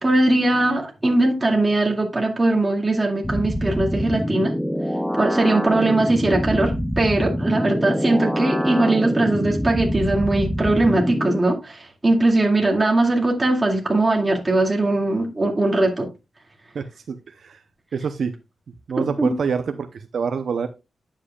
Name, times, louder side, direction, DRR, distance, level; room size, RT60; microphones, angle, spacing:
voice 1, 0.0-4.5 5.1-16.1 19.0-19.3, right 2 dB, 20° right, 2.2 m, -20 dB
sound 1, 3.2-11.4, equal, ahead, 0.6 m, -25 dB
voice 2, 16.7-17.1 17.4-17.6 17.9-18.3 18.9-19.6 19.9-20.7, right 6 dB, 65° right, 0.7 m, -26 dB
9.9 x 7.5 x 2.3 m
wide cardioid pair, 115°, 0 cm